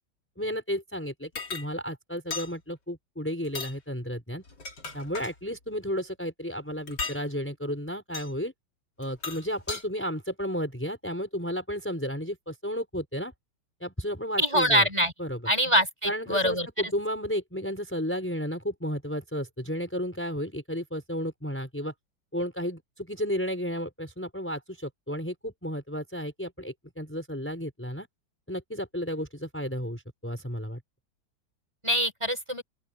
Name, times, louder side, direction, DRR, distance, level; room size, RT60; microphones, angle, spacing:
voice 1, 0.4-4.4 4.9-8.5 9.0-13.3 13.8-14.9 15.2-15.4 16.0-21.9 22.3-28.1 28.5-30.8, equal, 5° left, 4.9 m, -33 dB
sound 1, 1.4-1.7 2.3-2.5 3.4-3.8 4.4-5.3 6.9-7.2 8.1-8.3 9.0-9.8, left 4 dB, 60° left, 3.9 m, -36 dB
voice 2, 14.4-15.1 15.5-16.9 31.8-32.6, equal, 15° right, 6.5 m, -24 dB
open air
omnidirectional pair, 2.1 m